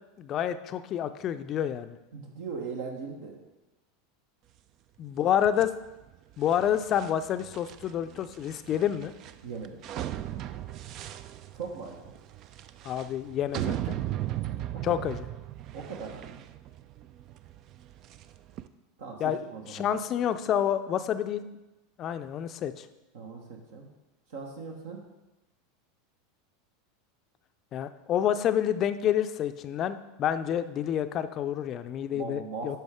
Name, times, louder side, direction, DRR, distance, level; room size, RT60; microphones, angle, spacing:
voice 1, 0.2-2.0 5.0-5.7 6.4-9.1 12.8-14.0 14.8-15.2 19.2-19.4 19.7-21.4 22.0-22.9 27.7-32.8, left 10 dB, 40° left, 11 dB, 0.5 m, -28 dB
voice 2, 2.1-3.4 9.4-9.8 11.5-12.1 14.8-15.0 15.7-16.4 19.0-19.9 23.1-23.9 24.3-25.0 32.1-32.8, right 4 dB, 65° right, 1 dB, 1.2 m, -39 dB
sound 1, 5.4-18.7, right 13 dB, 45° right, 0.4 m, -38 dB
10.0 x 5.9 x 3.5 m, 1.0 s
figure-of-eight pair, 85°, 0 cm